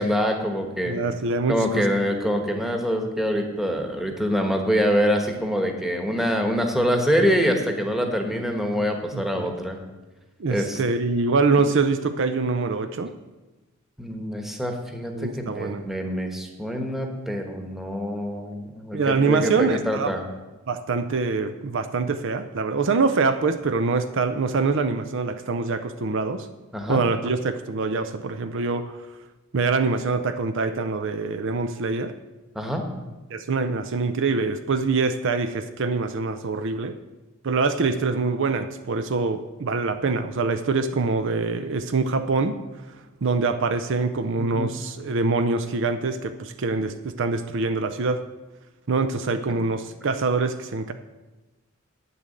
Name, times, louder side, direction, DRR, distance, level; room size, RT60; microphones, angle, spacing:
voice 1, 0.0-1.0 1.5-9.8 10.5-10.8 14.0-20.2 26.7-27.0 32.5-32.8 44.4-44.7, equal, ahead, 3 dB, 1.2 m, -25 dB
voice 2, 0.9-1.9 2.5-2.6 9.1-9.5 10.4-13.1 15.1-15.8 18.9-20.1 20.7-26.5 26.9-29.0 29.5-32.1 33.3-37.0 37.4-42.6 43.2-48.2 48.9-50.9, right 4 dB, 60° right, 9 dB, 0.5 m, -24 dB
9.0 x 6.9 x 7.6 m, 1.1 s
head